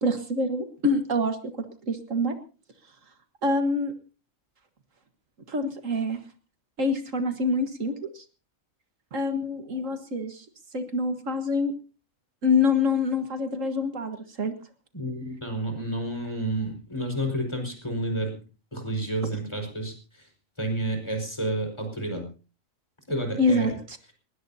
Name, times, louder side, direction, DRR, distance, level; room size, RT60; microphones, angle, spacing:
voice 1, 0.0-2.3 3.4-3.9 5.5-6.2 6.8-8.2 9.1-10.5 10.7-11.7 12.4-14.5 23.4-24.0, left 2 dB, 70° right, 7 dB, 1.9 m, -26 dB
voice 2, 14.9-18.4 18.7-20.2 20.6-22.2 23.1-23.7, right 1 dB, 20° left, 3 dB, 5.2 m, -30 dB
20.5 x 20.0 x 2.8 m, 0.35 s
omnidirectional pair, 1.4 m